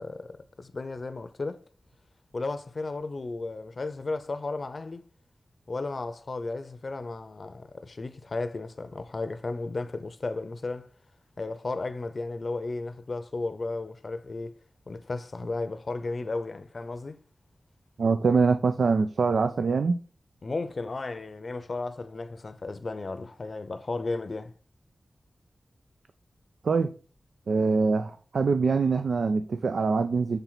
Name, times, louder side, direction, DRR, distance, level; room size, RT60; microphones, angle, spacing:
voice 1, 0.0-1.6 2.3-5.0 5.7-10.9 11.4-14.5 14.9-17.2 20.4-24.5, left 3 dB, 50° left, 0.6 m, -34 dB
voice 2, 18.0-20.0 26.6-26.9 27.5-30.4, right 4 dB, 85° right, 0.4 m, -24 dB
6.8 x 4.5 x 4.0 m
wide cardioid pair, 100°, 0 cm